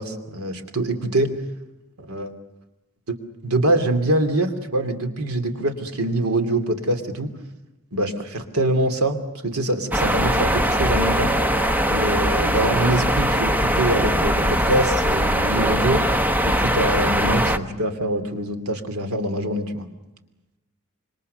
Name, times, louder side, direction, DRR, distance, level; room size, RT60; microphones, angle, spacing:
voice 1, 0.0-1.3 2.0-2.3 3.1-3.2 3.4-7.3 7.9-11.3 11.9-16.2 16.4-19.8, right 1 dB, 80° right, 7 dB, 2.8 m, -24 dB
sound 1, 9.9-17.6, equal, 10° right, 1.1 m, -21 dB
27.0 x 24.5 x 6.8 m, 0.98 s
head